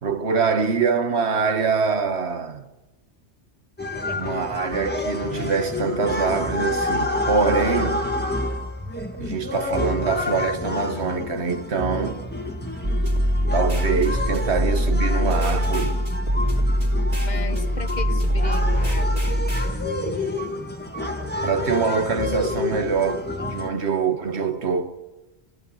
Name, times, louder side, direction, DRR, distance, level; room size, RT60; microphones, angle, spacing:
voice 1, 0.0-2.7 4.2-8.1 9.2-12.2 13.5-16.0 21.4-25.0, right 5 dB, 75° right, 1.6 m, -24 dB
sound 1, 3.8-23.7, left 2 dB, 10° left, 1.5 m, -29 dB
sound 2, 12.8-19.7, equal, 35° right, 3.4 m, -22 dB
voice 2, 17.2-19.2 23.6-23.8, left 3 dB, 45° left, 1.0 m, -36 dB
28.5 x 16.0 x 6.3 m
omnidirectional pair, 1.1 m